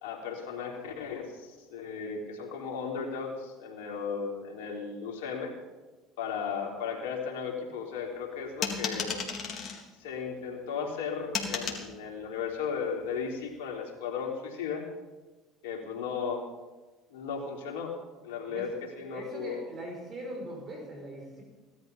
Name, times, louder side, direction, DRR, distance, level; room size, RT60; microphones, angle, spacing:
voice 1, 0.0-5.5 6.2-9.1 10.0-14.8 15.6-16.4 17.1-17.9 18.2-18.7 19.0-19.6, left 6 dB, 80° left, 0 dB, 3.6 m, -35 dB
sound 1, 8.6-9.8 11.3-11.8, left 6 dB, 50° left, 3.5 m, -33 dB
voice 2, 19.1-21.4, right 1 dB, 40° right, 1 dB, 5.5 m, -40 dB
18.0 x 13.0 x 5.5 m, 1.2 s
supercardioid pair, 80°, 0 cm